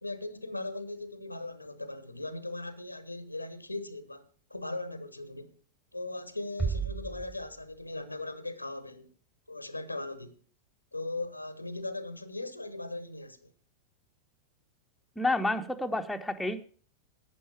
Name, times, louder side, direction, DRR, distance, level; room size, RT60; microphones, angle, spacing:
voice 1, 0.0-5.5 5.9-9.1 9.5-10.4 10.9-13.5, left 2 dB, 85° left, 1.0 m, -39 dB
sound 1, 6.6-8.2, right 5 dB, 20° right, 2.2 m, -34 dB
voice 2, 15.2-16.7, left 2 dB, 5° left, 1.0 m, -30 dB
11.0 x 9.3 x 4.8 m
figure-of-eight pair, 90°, 0 cm